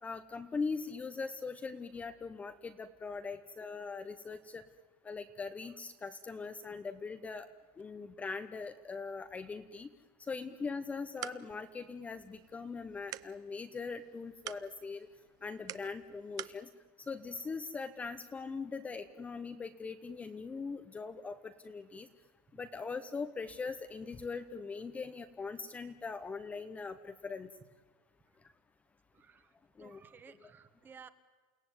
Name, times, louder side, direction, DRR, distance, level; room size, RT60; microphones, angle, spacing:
voice 1, 0.0-4.6 5.0-7.5 7.8-9.9 10.3-15.1 15.4-16.7 17.1-22.1 22.6-27.5 29.8-30.0 30.3-30.5, left 4 dB, 15° left, 9 dB, 0.9 m, -41 dB
sound 1, 10.8-16.6, right 14 dB, 35° right, 0.8 m, -49 dB
voice 2, 29.1-29.5 29.8-31.1, right 6 dB, 20° right, 12 dB, 1.4 m, -55 dB
29.5 x 17.0 x 9.5 m, 1.4 s
supercardioid pair, 155°, 11 cm